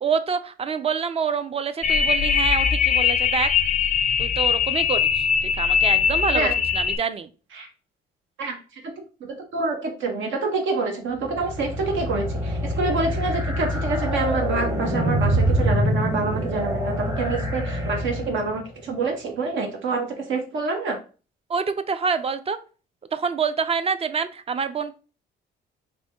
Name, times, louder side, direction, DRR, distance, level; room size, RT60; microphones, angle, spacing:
voice 1, 0.0-3.5 4.2-7.3 21.5-22.6 23.1-25.0, right 5 dB, 30° right, 11 dB, 0.4 m, -26 dB
sound 1, 1.8-7.0, left 7 dB, 40° left, 0.4 m, -21 dB
voice 2, 8.4-8.9 9.2-21.0, right 3 dB, 75° right, 3 dB, 0.7 m, -27 dB
sound 2, 11.2-18.6, equal, 15° right, 0.7 m, -25 dB
3.3 x 2.6 x 2.8 m, 0.35 s
cardioid pair, 90°, 20 cm